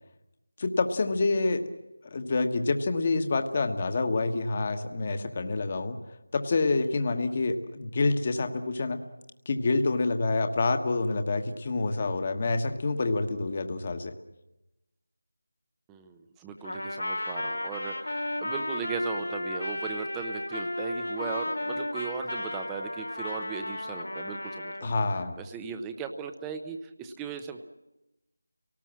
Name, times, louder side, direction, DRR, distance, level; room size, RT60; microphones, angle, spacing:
voice 1, 0.6-1.6 2.1-6.0 6.3-9.0 9.4-14.1 24.8-25.4, left 3 dB, 30° left, 7 dB, 1.4 m, -27 dB
voice 2, 15.9-24.9 25.4-27.6, right 5 dB, 10° right, 6 dB, 0.8 m, -37 dB
Trumpet, 16.6-24.8, left 1 dB, 90° left, 2.3 m, -34 dB
29.5 x 18.5 x 7.5 m, 0.98 s
figure-of-eight pair, 165°, 0 cm